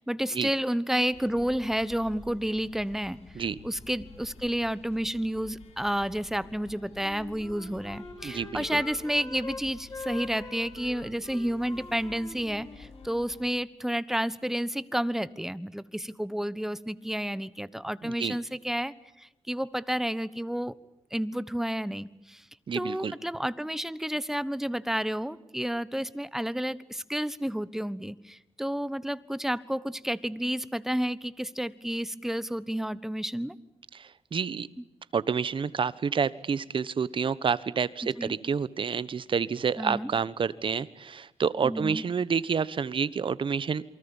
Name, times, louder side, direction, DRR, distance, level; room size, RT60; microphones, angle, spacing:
voice 1, 0.0-3.2 3.6-20.8 21.1-22.4 22.7-33.5 38.2-38.4 39.8-40.1 41.6-42.0, equal, 5° right, 16 dB, 1.1 m, -31 dB
sound 1, 1.1-13.5, left 3 dB, 80° left, 6.9 m, -51 dB
Wind instrument woodwind instrument, 6.9-9.6 9.9-13.5, left 3 dB, 30° left, 4.6 m, -44 dB
voice 2, 8.2-8.8 18.0-18.4 22.7-23.1 33.9-34.7 35.1-43.8, right 6 dB, 50° right, 17 dB, 1.2 m, -29 dB
28.5 x 24.0 x 7.2 m, 0.98 s
cardioid pair, 95°, 11 cm